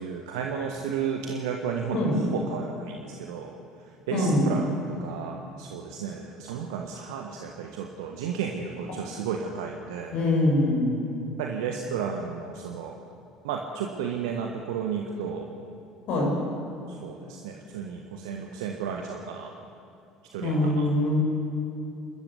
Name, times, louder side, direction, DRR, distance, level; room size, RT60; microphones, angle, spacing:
voice 1, 0.0-2.0 2.3-3.5 4.1-4.7 5.0-10.1 11.4-13.0 13.4-15.5 16.9-19.5 20.3-20.9, right 7 dB, 65° right, 2 dB, 1.5 m, -33 dB
voice 2, 4.1-4.6 10.1-11.0 16.1-16.4 20.4-21.2, left 1 dB, 55° left, -1 dB, 7.1 m, -23 dB
29.0 x 13.5 x 8.3 m, 2.7 s
figure-of-eight pair, 60°, 3 cm